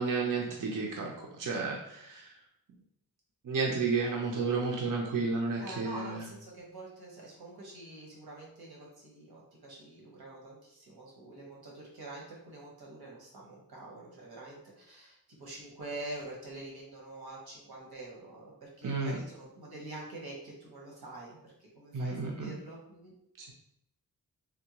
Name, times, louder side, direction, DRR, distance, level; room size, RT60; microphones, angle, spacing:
voice 1, 0.0-2.3 3.4-6.3 18.8-19.2 21.9-22.5 23.4-23.5, right 4 dB, 60° right, 0 dB, 0.6 m, -32 dB
voice 2, 5.6-23.1, right 2 dB, 90° right, -3 dB, 1.1 m, -46 dB
3.4 x 2.2 x 2.9 m, 0.76 s
wide cardioid pair, 90°, 36 cm